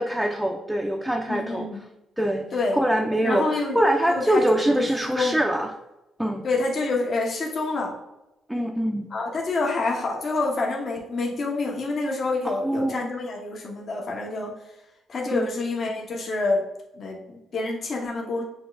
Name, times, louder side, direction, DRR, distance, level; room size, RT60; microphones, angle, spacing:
voice 1, 0.0-1.7 2.2-2.5 2.7-5.7 6.2-6.5 8.5-9.1 12.4-13.0 15.3-15.5, right 1 dB, 5° right, 2 dB, 0.4 m, -24 dB
voice 2, 1.3-1.8 2.5-2.8 3.2-3.8 4.1-5.4 6.4-7.9 9.1-14.5 15.1-16.6 16.9-18.4, left 3 dB, 50° left, -1 dB, 1.0 m, -27 dB
6.3 x 2.4 x 3.4 m, 0.94 s
cardioid pair, 90°, 0 cm